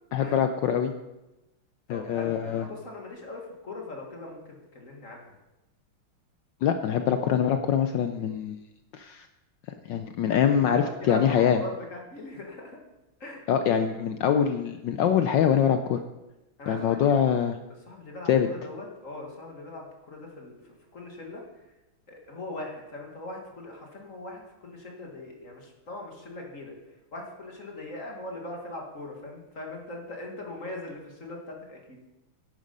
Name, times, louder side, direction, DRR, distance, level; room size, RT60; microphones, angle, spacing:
voice 1, 0.1-0.9 1.9-2.6 6.6-8.6 8.9-9.3 9.9-11.6 13.5-16.0 16.7-17.6 18.3-18.5, left 8 dB, 70° left, 8 dB, 1.1 m, -24 dB
voice 2, 1.9-5.4 10.3-12.8 13.2-13.4 16.6-17.2 17.9-20.6 20.9-21.4 22.1-26.7 27.1-32.0, left 2 dB, 40° left, 0 dB, 2.1 m, -40 dB
11.5 x 9.1 x 5.4 m, 1.0 s
omnidirectional pair, 2.4 m